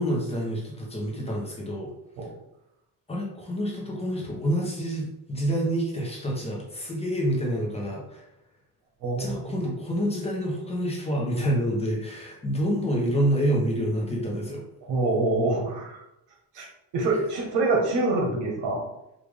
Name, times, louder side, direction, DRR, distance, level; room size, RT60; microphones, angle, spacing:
voice 1, 0.0-1.9 3.1-8.3 9.2-14.6 17.1-17.2, equal, 15° left, -3 dB, 0.8 m, -27 dB
voice 2, 9.0-9.6 14.9-16.0 16.5-16.7 16.9-18.8, right 2 dB, 90° right, -1 dB, 1.4 m, -25 dB
4.9 x 2.5 x 3.4 m, 0.87 s
cardioid pair, 165°, 40 cm